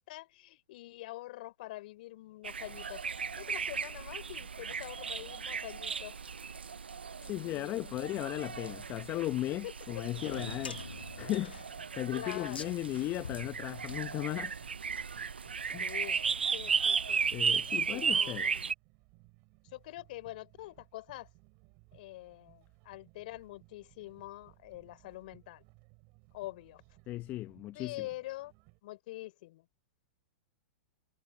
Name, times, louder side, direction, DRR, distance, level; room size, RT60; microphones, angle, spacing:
voice 1, 0.1-6.6 7.2-7.9 8.6-8.7 9.6-10.0 10.4-10.5 12.1-12.7 15.8-16.2 16.5-17.2 17.7-18.7 19.6-21.3 21.9-25.6 26.3-26.8 27.7-28.5 28.8-29.7, left 17 dB, 60° left, 3.5 m, -45 dB
sound 1, 2.4-18.7, right 6 dB, 90° right, 0.4 m, -35 dB
voice 2, 7.2-10.8 11.2-14.6 15.7-15.9 17.3-18.4 27.1-28.1, left 16 dB, 35° left, 0.8 m, -36 dB
sound 2, 10.1-14.7, left 5 dB, 90° left, 2.0 m, -46 dB
sound 3, 10.3-28.8, right 32 dB, 45° right, 5.2 m, -62 dB
hypercardioid pair, 110°, 5 cm